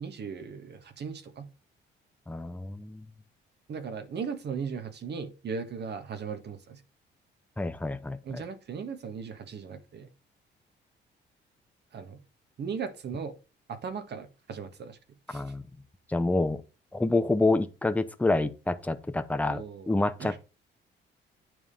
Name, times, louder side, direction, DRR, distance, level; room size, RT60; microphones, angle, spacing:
voice 1, 0.0-1.5 3.7-6.8 8.2-10.1 11.9-12.2 12.6-13.3 13.7-15.0 15.3-15.5 19.5-19.9 20.2-20.4, right 6 dB, 60° right, 1.6 m, -37 dB
voice 2, 2.3-3.1 7.6-8.4 15.3-15.6 16.1-16.6 16.9-20.3, left 2 dB, 5° left, 0.9 m, -28 dB
9.5 x 3.7 x 6.6 m
cardioid pair, 90°, 20 cm